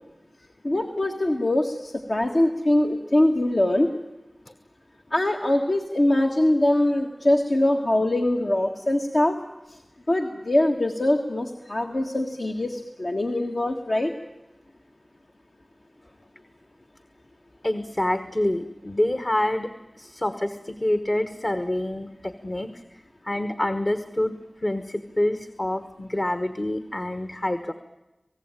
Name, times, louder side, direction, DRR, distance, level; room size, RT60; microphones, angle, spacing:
voice 1, 0.6-3.9 5.1-9.4 10.1-14.1, left 1 dB, 65° left, 1 dB, 1.7 m, -23 dB
voice 2, 17.6-19.7 20.0-22.7 23.2-24.3 24.6-27.7, left 1 dB, 45° left, 10 dB, 1.3 m, -26 dB
27.0 x 18.5 x 9.0 m, 1.0 s
wide cardioid pair, 45°, 0 cm